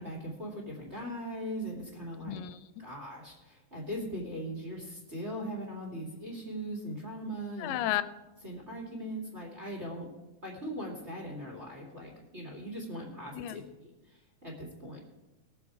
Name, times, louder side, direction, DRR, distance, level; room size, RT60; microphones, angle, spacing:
voice 1, 0.0-2.4 2.8-7.7 8.4-10.1 10.4-15.0, equal, 25° right, -3 dB, 1.9 m, -40 dB
voice 2, 2.2-2.8 7.6-8.0 13.3-13.6, left 13 dB, 90° left, 12 dB, 2.2 m, -33 dB
18.5 x 7.2 x 4.7 m, 1.1 s
omnidirectional pair, 3.8 m